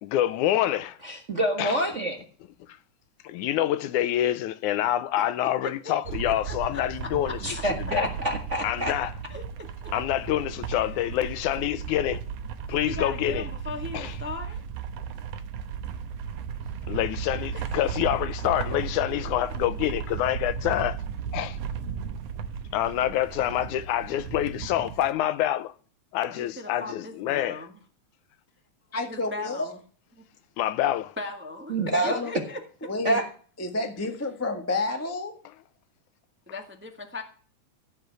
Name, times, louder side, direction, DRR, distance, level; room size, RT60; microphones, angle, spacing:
voice 1, 0.0-0.9 1.6-1.8 3.2-7.4 7.9-8.1 8.6-9.1 9.9-12.2 12.7-13.4 13.9-14.2 16.9-21.0 21.3-21.6 22.7-25.7 26.1-27.6 30.6-31.1, left 12 dB, 80° left, 2.2 m, -26 dB
voice 2, 1.0-2.2 7.4-8.9 31.7-32.2 33.0-33.3, right 1 dB, 35° right, 1.1 m, -26 dB
voice 3, 5.4-6.0 6.2-7.6 9.3-9.9 10.8-11.1 12.8-14.6 17.5-17.8 18.4-18.5 26.3-27.8 29.1-29.8 30.2-30.3 31.2-32.6 36.5-37.2, left 3 dB, 10° right, 0.7 m, -39 dB
sound 1, 6.0-25.1, right 7 dB, 65° right, 1.8 m, -35 dB
voice 4, 28.9-29.7 31.8-32.3 32.8-33.2 33.6-35.4, left 2 dB, 20° left, 0.4 m, -30 dB
15.5 x 5.4 x 8.2 m
omnidirectional pair, 3.5 m